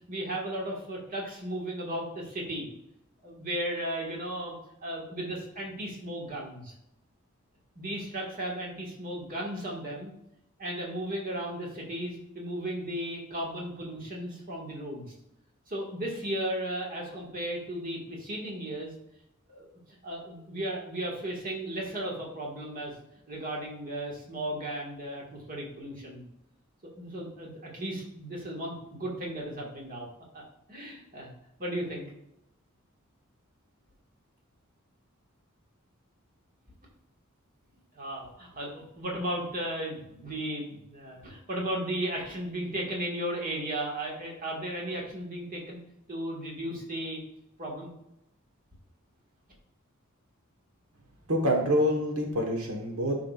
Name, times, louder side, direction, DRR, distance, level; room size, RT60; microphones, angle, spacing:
voice 1, 0.1-2.7 3.2-4.6 4.8-6.7 7.8-10.1 10.6-15.1 15.7-18.9 19.5-19.7 20.0-22.9 23.3-26.3 27.0-30.1 30.3-30.4 30.7-31.3 31.6-32.1 37.9-45.8 46.1-47.2 47.6-47.9, right 1 dB, 40° right, -2 dB, 1.8 m, -35 dB
voice 2, 51.3-53.3, equal, 85° right, 2 dB, 1.4 m, -26 dB
10.5 x 4.9 x 2.5 m, 0.82 s
head